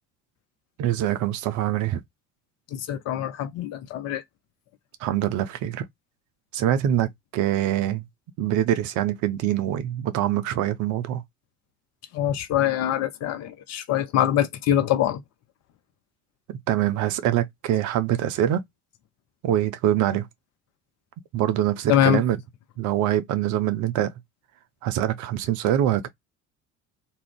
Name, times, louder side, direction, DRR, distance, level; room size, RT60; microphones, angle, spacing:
voice 1, 0.8-2.0 5.0-5.8 6.5-8.0 8.4-11.2 16.5-18.6 19.4-20.3 21.3-22.4 22.8-24.1 24.8-26.1, right 11 dB, 45° right, 0.5 m, -24 dB
voice 2, 2.7-4.2 12.1-15.2 21.9-22.2, left 11 dB, 40° left, 0.5 m, -24 dB
2.3 x 2.0 x 3.5 m
figure-of-eight pair, 55°, 43 cm